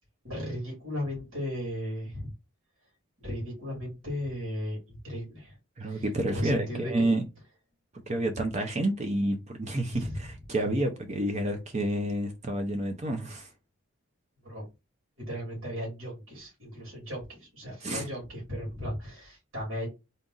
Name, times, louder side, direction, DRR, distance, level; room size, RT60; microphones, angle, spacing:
voice 1, 0.2-2.3 3.2-5.6 5.8-7.1 9.9-10.2 14.4-14.7 15.2-19.9, equal, 70° right, 2.7 m, -36 dB
voice 2, 5.8-7.2 8.1-13.5 17.8-18.1, right 1 dB, 30° right, 0.5 m, -29 dB
3.9 x 2.4 x 3.8 m
head